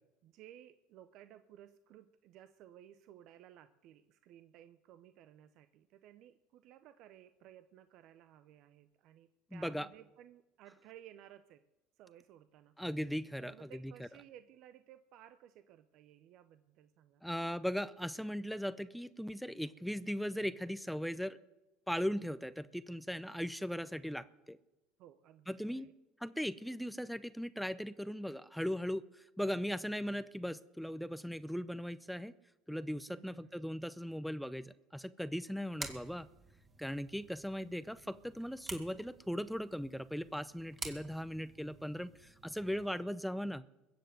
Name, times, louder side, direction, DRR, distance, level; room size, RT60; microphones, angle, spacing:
voice 1, 0.2-11.6 12.0-12.7 13.4-17.2 25.0-25.9 33.1-33.9, right 11 dB, 60° right, 12 dB, 0.7 m, -58 dB
voice 2, 9.5-9.9 12.8-14.1 17.2-21.4 21.9-24.6 25.5-25.9 26.2-32.3 32.7-36.3 36.8-43.6, equal, ahead, 15 dB, 0.6 m, -38 dB
sound 1, 35.8-43.0, right 3 dB, 30° right, 2.7 m, -50 dB
22.0 x 7.9 x 7.8 m, 1.0 s
hypercardioid pair, 75°, 0 cm